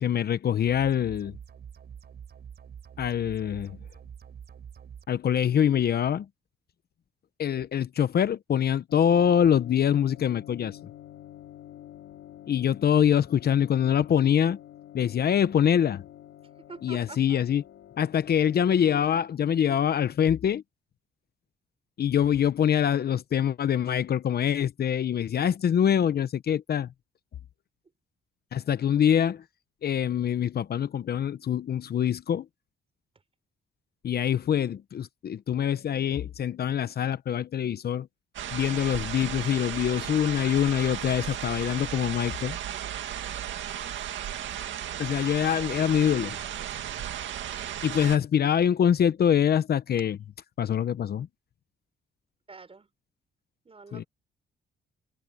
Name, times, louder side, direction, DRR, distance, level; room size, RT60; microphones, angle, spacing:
voice 1, 0.0-1.4 3.0-3.8 5.1-6.3 7.4-10.8 12.5-14.6 14.9-16.0 16.8-17.6 18.0-20.6 22.0-26.9 28.5-29.4 29.8-32.5 34.0-38.1 38.5-42.6 45.0-46.4 47.8-50.2 50.6-51.3 53.9-54.0, left 9 dB, 50° left, 0.9 m, -24 dB
sound 1, 0.7-5.1, right 8 dB, 55° right, 4.7 m, -46 dB
sound 2, 8.9-18.8, left 12 dB, 80° left, 2.2 m, -48 dB
voice 2, 16.7-17.4 52.5-52.9 53.6-54.1, right 4 dB, 30° right, 4.3 m, -46 dB
sound 3, 38.3-48.2, right 10 dB, 70° right, 2.2 m, -35 dB
cardioid pair, 90°, 20 cm